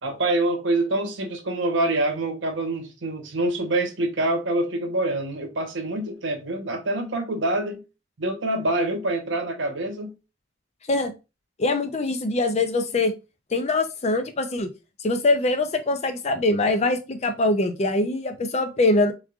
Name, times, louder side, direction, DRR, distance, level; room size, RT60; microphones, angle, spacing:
voice 1, 0.0-7.8 8.2-10.1, right 2 dB, 65° right, 0.8 m, -26 dB
voice 2, 11.6-13.1 13.5-14.7 15.0-19.1, left 2 dB, 35° left, 0.5 m, -23 dB
3.5 x 3.1 x 2.3 m
head